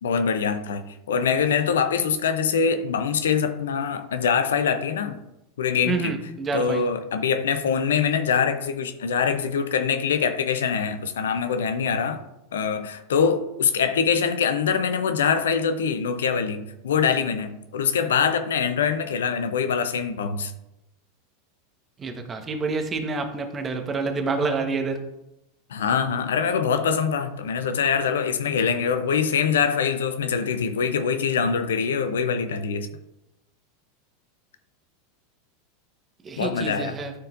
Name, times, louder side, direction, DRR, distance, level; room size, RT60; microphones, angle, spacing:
voice 1, 0.0-5.2 5.6-6.2 6.5-12.2 12.5-20.5 25.7-32.9 36.4-36.9, left 6 dB, 70° left, 0.6 m, -24 dB
voice 2, 5.9-6.9 22.0-25.0 36.2-37.1, right 4 dB, 25° right, 1.2 m, -28 dB
12.5 x 4.4 x 2.6 m
figure-of-eight pair, 85°, 0 cm